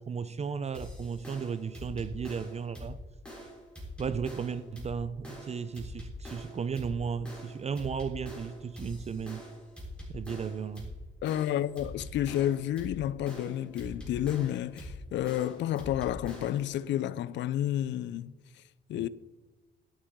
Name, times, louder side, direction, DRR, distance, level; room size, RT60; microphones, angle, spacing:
voice 1, 0.0-3.0 4.0-9.4 10.1-10.9 18.9-19.1, right 6 dB, 35° right, 0.5 m, -35 dB
sound 1, 0.7-16.7, left 1 dB, 5° left, 4.0 m, -44 dB
voice 2, 11.2-18.3 18.9-19.1, left 12 dB, 65° left, 0.4 m, -30 dB
11.0 x 9.1 x 3.7 m
cardioid pair, 90°, 20 cm